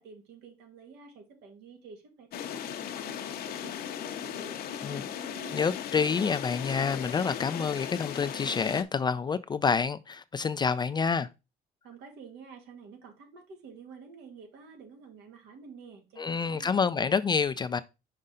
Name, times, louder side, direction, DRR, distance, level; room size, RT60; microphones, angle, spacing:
voice 1, 0.0-5.6 11.8-16.7, right 5 dB, 80° right, 2.0 m, -50 dB
sound 1, 2.3-8.8, left 9 dB, 65° left, 0.8 m, -37 dB
voice 2, 5.5-11.3 16.2-17.8, left 5 dB, 25° left, 0.4 m, -28 dB
5.5 x 5.3 x 3.7 m
cardioid pair, 110°, 17 cm